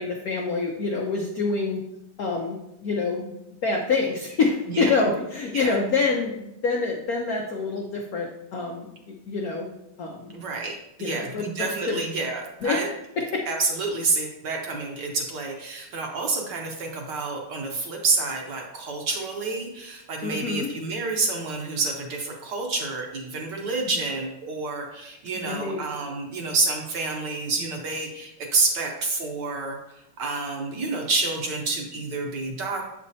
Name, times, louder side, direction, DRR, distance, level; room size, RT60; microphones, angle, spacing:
voice 1, 0.0-1.8 2.2-2.6 2.8-3.3 3.6-8.9 9.3-9.7 10.0-10.3 11.0-12.0 12.6-12.8 13.2-13.4 20.2-20.7 25.4-25.8, left 4 dB, 85° left, 0 dB, 0.8 m, -26 dB
voice 2, 10.3-12.9 13.5-32.9, right 3 dB, 60° right, 1 dB, 1.3 m, -28 dB
7.5 x 5.2 x 2.7 m, 0.87 s
omnidirectional pair, 2.4 m